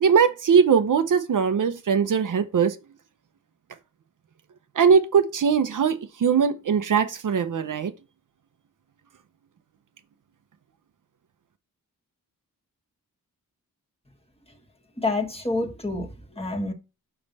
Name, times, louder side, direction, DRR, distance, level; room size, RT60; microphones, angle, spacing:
voice 1, 0.0-2.8 4.8-7.9, right 6 dB, 60° right, 0.7 m, -20 dB
voice 2, 15.0-16.7, left 2 dB, 15° left, 1.4 m, -28 dB
5.9 x 5.4 x 4.0 m
wide cardioid pair, 100°, 35 cm